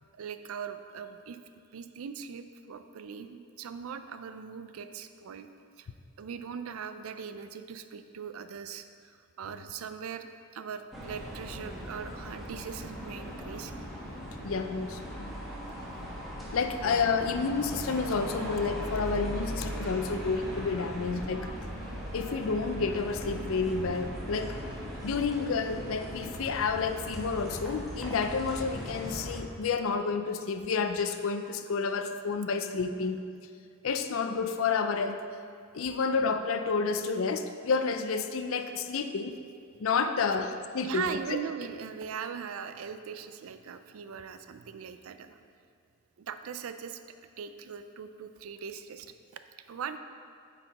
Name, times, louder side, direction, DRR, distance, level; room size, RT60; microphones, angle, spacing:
voice 1, 0.1-1.4 1.7-5.5 5.8-5.9 6.2-13.7 40.8-45.4 46.2-47.0 47.4-49.1 49.7-50.0, right 7 dB, 75° right, 9 dB, 0.4 m, -40 dB
sound 1, 10.9-29.4, equal, ahead, 1.2 m, -39 dB
voice 2, 14.4-15.3 16.5-21.5 22.1-24.6 25.0-33.2 33.8-35.2 35.7-39.3 39.8-41.0 41.3-41.4, left 5 dB, 65° left, 8 dB, 0.4 m, -30 dB
8.9 x 4.6 x 4.1 m, 2.3 s
head